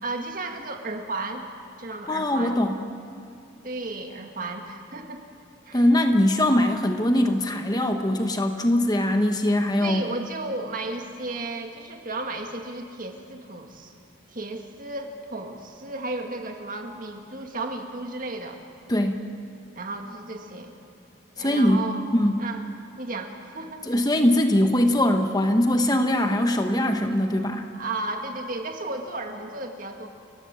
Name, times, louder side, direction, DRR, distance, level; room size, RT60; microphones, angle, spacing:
voice 1, 0.0-1.5 1.8-2.6 3.6-5.2 5.7-5.9 9.8-13.9 14.3-18.6 19.8-20.7 21.4-22.0 22.4-22.7 23.0-24.1 27.7-30.1, right 2 dB, 45° right, 4 dB, 1.9 m, -34 dB
voice 2, 2.1-2.8 5.7-10.0 18.9-19.2 21.4-21.9 22.1-22.4 23.9-27.6, left 1 dB, 20° left, 5 dB, 1.1 m, -21 dB
30.0 x 15.5 x 7.6 m, 2.7 s
head